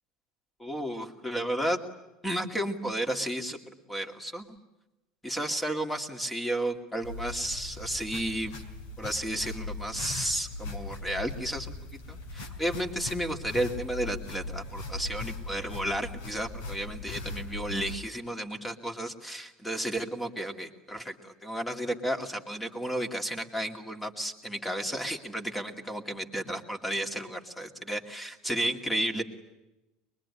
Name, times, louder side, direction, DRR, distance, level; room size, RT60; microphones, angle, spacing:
voice 1, 0.6-1.8 2.2-4.5 5.2-8.6 9.0-11.7 12.1-29.2, right 1 dB, 5° left, 5 dB, 2.5 m, -33 dB
sound 1, 7.0-17.9, left 3 dB, 90° left, 5.0 m, -39 dB
24.0 x 22.5 x 9.9 m, 0.98 s
cardioid pair, 150°, 0 cm